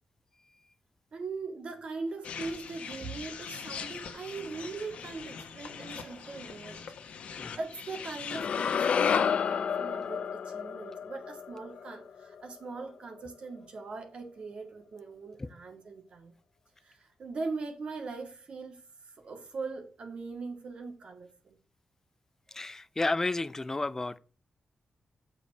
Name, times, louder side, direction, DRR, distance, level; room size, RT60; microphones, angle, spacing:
voice 1, 1.1-6.8 7.6-16.3 16.8-21.6, right 4 dB, 60° right, 2.2 m, -40 dB
sound 1, 2.2-8.8, left 6 dB, 90° left, 1.2 m, -43 dB
sound 2, 8.3-12.5, left 7 dB, 70° left, 0.7 m, -30 dB
voice 2, 22.5-24.2, left 2 dB, 20° left, 0.6 m, -31 dB
8.4 x 6.2 x 5.5 m
wide cardioid pair, 110°, 2 cm